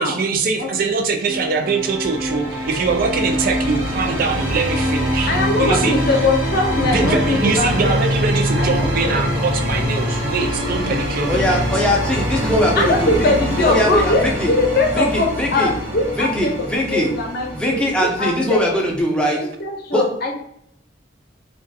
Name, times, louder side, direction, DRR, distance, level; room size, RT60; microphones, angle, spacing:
voice 1, 0.0-5.3 5.6-5.9 6.8-11.8, right 4 dB, 50° right, 6 dB, 0.4 m, -22 dB
sound 1, 1.3-19.0, equal, 80° right, 0.7 m, -24 dB
voice 2, 5.3-8.0 8.6-9.2 12.8-18.8 19.3-20.3, left 2 dB, 60° left, 1 dB, 0.6 m, -21 dB
voice 3, 11.3-13.3 13.6-14.5 14.9-15.7 16.1-17.1 17.5-19.4 19.9-20.0, left 1 dB, 5° left, -1 dB, 0.5 m, -20 dB
2.3 x 2.2 x 2.6 m, 0.70 s
head